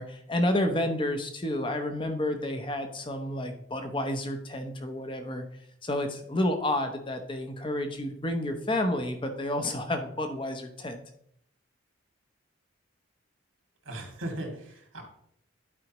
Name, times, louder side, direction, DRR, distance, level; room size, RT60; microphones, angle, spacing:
voice 1, 0.0-5.4 5.8-11.0, left 1 dB, 25° left, 6 dB, 0.8 m, -30 dB
voice 2, 13.8-15.0, right 1 dB, 80° right, 1 dB, 2.1 m, -37 dB
11.0 x 4.9 x 3.0 m, 0.69 s
head